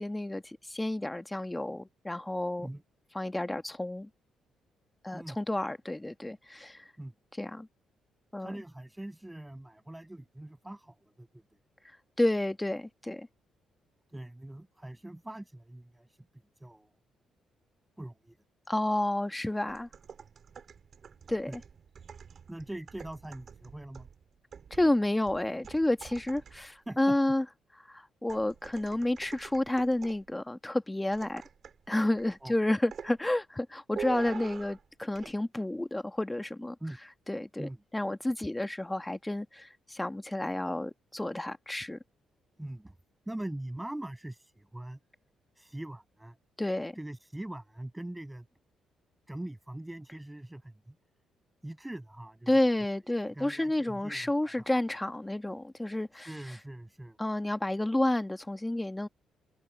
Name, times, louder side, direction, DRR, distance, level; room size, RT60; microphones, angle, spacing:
voice 1, 0.0-2.7 3.1-4.1 5.0-6.8 7.4-7.7 8.3-8.5 12.2-13.3 18.7-19.9 21.3-21.6 24.7-27.4 27.9-31.4 31.9-36.7 37.3-42.0 46.6-46.9 52.5-56.3 57.2-59.1, left 1 dB, 10° left, 1.5 m, -30 dB
voice 2, 8.4-11.4 14.1-16.2 16.6-16.9 18.0-18.4 21.5-21.6 22.5-24.1 26.9-27.2 32.4-32.6 36.8-37.0 37.6-37.8 42.6-42.9 43.3-45.0 45.5-46.4 46.9-48.4 49.3-50.9 51.6-52.5 52.8-52.9 53.2-54.7 56.1-57.2, right 1 dB, 10° right, 6.5 m, -42 dB
sound 1, 19.7-26.8 28.3-30.3 31.1-31.9 32.2-32.4 32.9-33.2 34.0-34.9 35.2-35.3, right 6 dB, 50° right, 3.9 m, -46 dB
cardioid pair, 90°, 0 cm